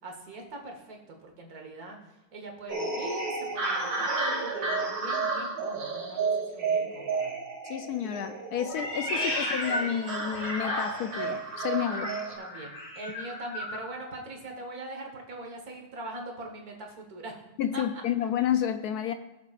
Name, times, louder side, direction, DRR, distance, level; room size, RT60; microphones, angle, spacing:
voice 1, 0.0-2.0 2.3-7.3 11.9-17.4 17.7-18.0, right 2 dB, 50° right, 2 dB, 1.9 m, -42 dB
sound 1, 2.7-12.4, right 4 dB, 80° right, 3.0 m, -32 dB
voice 2, 7.6-12.1 17.6-19.1, left 9 dB, 75° left, 9 dB, 0.9 m, -30 dB
Meow, 8.7-11.3 11.8-13.9, left 1 dB, 45° left, 2.2 m, -34 dB
17.0 x 7.3 x 2.4 m, 0.99 s
omnidirectional pair, 2.1 m